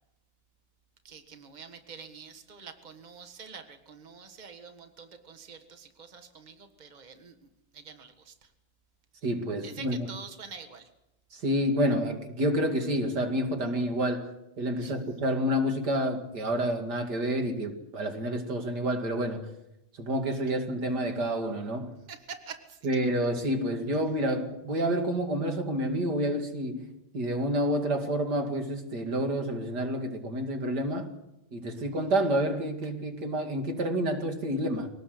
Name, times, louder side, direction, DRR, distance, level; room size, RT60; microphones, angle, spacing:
voice 1, 1.0-7.3 7.7-8.5 9.6-10.9 14.8-15.0 22.1-22.8 31.7-32.0, right 6 dB, 75° right, 0.4 m, -46 dB
voice 2, 9.2-10.1 11.3-19.5 20.0-21.9 22.8-31.1 31.5-34.9, equal, 35° right, 2.3 m, -29 dB
23.5 x 18.5 x 7.8 m
omnidirectional pair, 3.8 m